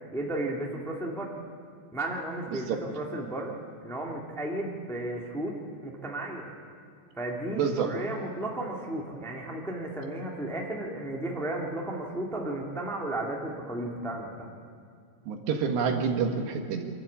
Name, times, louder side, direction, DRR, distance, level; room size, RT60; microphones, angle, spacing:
voice 1, 0.1-1.3 1.9-3.5 3.8-5.5 5.8-6.5 7.2-14.5, right 1 dB, ahead, -2 dB, 0.6 m, -34 dB
voice 2, 7.6-7.9 15.3-16.9, right 6 dB, 75° right, 3 dB, 3.6 m, -28 dB
26.5 x 12.5 x 8.6 m, 2.3 s
omnidirectional pair, 5.1 m